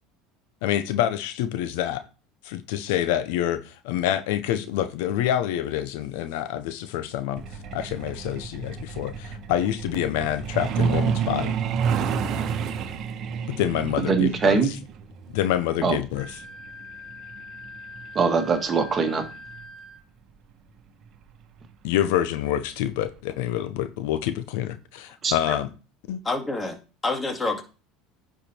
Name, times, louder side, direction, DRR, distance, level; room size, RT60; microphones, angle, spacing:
voice 1, 0.6-2.0 2.4-7.4 7.7-11.5 13.5-14.8 15.3-16.4 21.8-25.7 26.1-26.2, left 11 dB, 75° left, 0.9 m, -27 dB
Truck, 7.4-19.7 20.9-21.1 21.5-21.6 22.0-22.3 22.6-22.7 23.2-23.3, right 7 dB, 50° right, 1.2 m, -30 dB
voice 2, 14.0-14.7 15.8-16.0 18.2-19.2 25.2-25.3, right 5 dB, 30° right, 1.8 m, -22 dB
Wind instrument woodwind instrument, 16.1-20.0, left 3 dB, 15° right, 4.9 m, -43 dB
voice 3, 26.2-26.8 27.0-27.6, left 2 dB, 20° left, 2.1 m, -27 dB
10.0 x 5.0 x 4.5 m
supercardioid pair, 110°, 0 cm